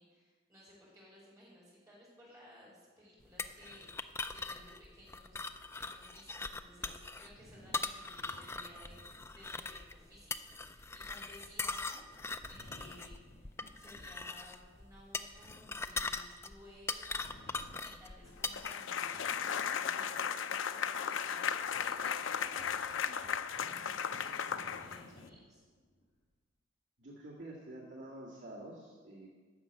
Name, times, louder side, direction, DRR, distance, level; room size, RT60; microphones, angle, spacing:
voice 1, 0.0-5.5 5.7-21.5 21.8-25.6, equal, 15° right, -6 dB, 4.6 m, -58 dB
sound 1, 3.4-18.7, left 3 dB, 15° left, 0.3 m, -41 dB
sound 2, 6.9-16.7 17.0-18.5 18.9-20.2 20.7-20.8 21.2-26.3, left 1 dB, 55° left, 3.8 m, -60 dB
sound 3, 18.5-25.3, left 7 dB, 75° left, 0.5 m, -36 dB
voice 2, 20.8-22.2 27.0-29.3, right 1 dB, 70° right, -5 dB, 1.9 m, -50 dB
11.5 x 6.5 x 8.4 m, 1.5 s
head